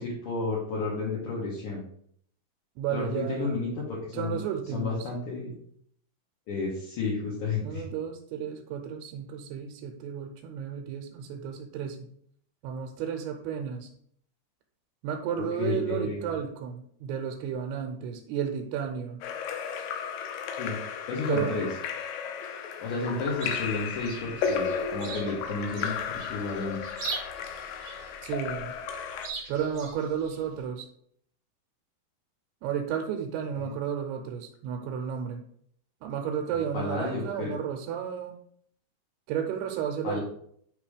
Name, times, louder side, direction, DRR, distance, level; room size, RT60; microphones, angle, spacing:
voice 1, 0.0-1.8 2.9-4.4 4.7-5.5 6.5-7.8 15.3-16.3 20.6-20.8 21.1-21.7 22.8-26.8 33.6-33.7 36.7-37.5 40.0-40.2, left 3 dB, 60° left, -5 dB, 2.3 m, -32 dB
voice 2, 2.8-3.5 4.1-5.1 7.6-12.0 12.6-13.9 15.0-19.2 21.3-21.6 28.2-28.7 29.5-30.9 32.6-35.4 36.0-38.4 39.3-40.2, right 8 dB, 90° right, 2 dB, 2.7 m, -32 dB
Splash splatter / Drip / Trickle dribble, 19.2-29.3, left 6 dB, 80° left, 2.2 m, -34 dB
Chirp tweet, 23.0-30.6, right 4 dB, 70° right, 1.2 m, -42 dB
8.4 x 3.0 x 5.0 m, 0.65 s
omnidirectional pair, 4.5 m